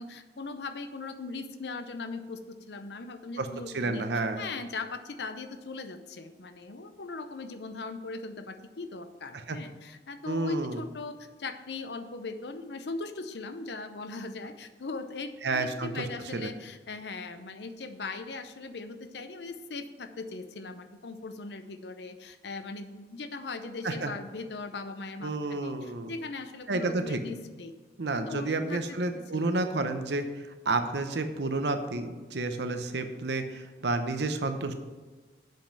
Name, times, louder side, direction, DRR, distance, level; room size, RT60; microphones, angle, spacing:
voice 1, 0.0-4.0 4.3-27.7 28.3-29.5, left 3 dB, 80° left, 9 dB, 0.7 m, -39 dB
voice 2, 3.7-4.4 9.3-9.6 10.3-10.8 15.4-16.1 16.3-16.5 23.8-24.1 25.2-26.1 26.7-27.2 28.0-30.3 30.6-34.7, right 3 dB, 80° right, 8 dB, 0.8 m, -30 dB
7.8 x 5.3 x 7.4 m, 1.3 s
head